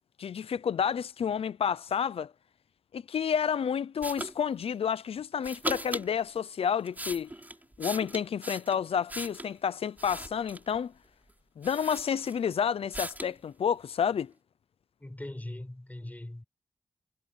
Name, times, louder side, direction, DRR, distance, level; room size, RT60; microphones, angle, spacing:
voice 1, 0.2-2.3 2.9-7.3 7.8-10.9 11.6-14.3, left 7 dB, 90° left, 0.5 m, -30 dB
sound 1, 4.0-4.3 5.4-6.1 6.7-9.5 10.0-10.8 11.3-11.4 11.6-12.5 12.9-13.4, right 1 dB, 15° right, 5.9 m, -38 dB
voice 2, 15.0-16.4, left 1 dB, 15° left, 6.9 m, -40 dB
wide cardioid pair, 70°, 10 cm